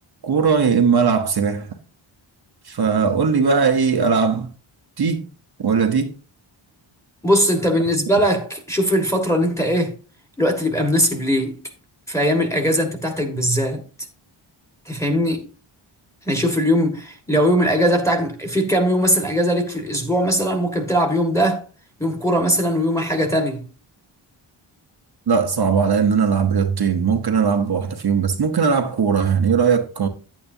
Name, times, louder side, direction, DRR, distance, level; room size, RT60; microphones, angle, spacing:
voice 1, 0.2-1.7 2.6-4.5 5.0-5.2 5.6-6.1 25.3-30.1, right 6 dB, 50° right, 1.0 m, -19 dB
voice 2, 7.2-10.0 10.4-11.6 12.1-13.8 14.9-15.5 16.3-21.6 22.0-23.7, equal, 5° left, 1.7 m, -20 dB
10.0 x 9.0 x 2.7 m
wide cardioid pair, 130°, 49 cm